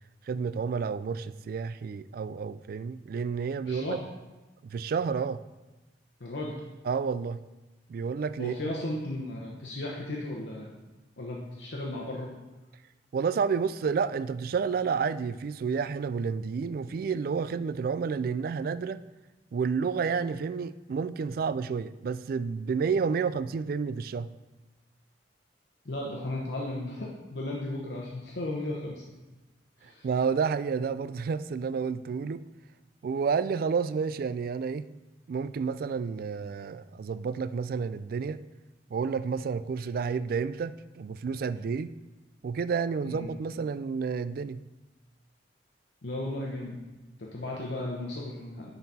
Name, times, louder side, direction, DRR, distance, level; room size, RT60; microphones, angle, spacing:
voice 1, 0.3-4.0 4.6-5.4 6.9-7.4 7.9-8.7 13.1-19.0 19.5-24.3 30.0-32.4 33.0-34.9 35.3-38.4 38.9-41.9 42.4-44.6, right 5 dB, 55° right, 15 dB, 0.3 m, -30 dB
voice 2, 3.6-4.0 6.2-6.5 8.4-10.7 11.2-12.3 25.8-29.0 29.8-30.1 43.0-43.3 46.0-46.8 47.2-48.8, left 1 dB, 75° left, -3 dB, 1.0 m, -35 dB
10.5 x 4.1 x 4.1 m, 1.1 s
head